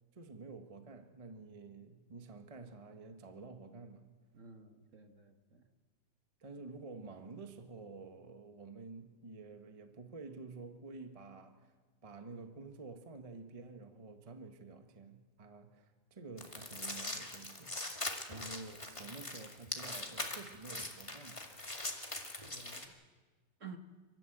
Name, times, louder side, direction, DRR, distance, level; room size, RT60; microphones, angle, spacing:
voice 1, 0.1-4.1 6.4-11.7 12.0-17.7 18.3-21.4, right 3 dB, 20° right, 7 dB, 1.1 m, -50 dB
voice 2, 4.3-5.7 22.5-22.9 23.6-23.8, right 5 dB, 40° right, 6 dB, 1.4 m, -52 dB
sound 1, 16.4-22.9, left 2 dB, 15° left, 1.8 m, -42 dB
29.5 x 12.5 x 7.9 m, 1.3 s
omnidirectional pair, 2.4 m